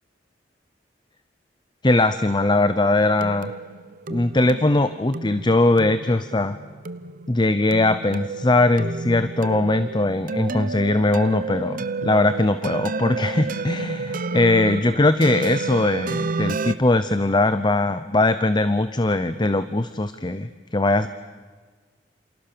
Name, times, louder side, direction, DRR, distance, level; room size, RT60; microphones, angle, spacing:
voice 1, 1.8-3.5 4.1-6.6 7.3-21.1, left 2 dB, 25° left, 12 dB, 0.8 m, -20 dB
sound 1, 2.7-16.8, right 3 dB, 50° right, 0.9 m, -31 dB
28.5 x 28.0 x 7.0 m, 1.5 s
head